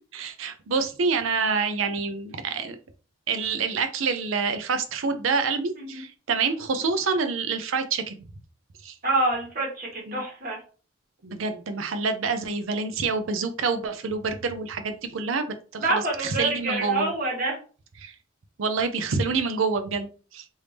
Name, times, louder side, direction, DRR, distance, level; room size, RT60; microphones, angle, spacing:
voice 1, 0.1-2.8 3.3-8.2 8.8-8.9 10.1-10.2 11.2-15.5 15.7-17.1 18.0-18.1 18.6-20.4, right 4 dB, 70° right, 8 dB, 0.5 m, -27 dB
voice 2, 9.0-10.6 15.8-17.6, right 2 dB, 40° right, -2 dB, 1.3 m, -27 dB
3.4 x 2.7 x 3.1 m, 0.37 s
head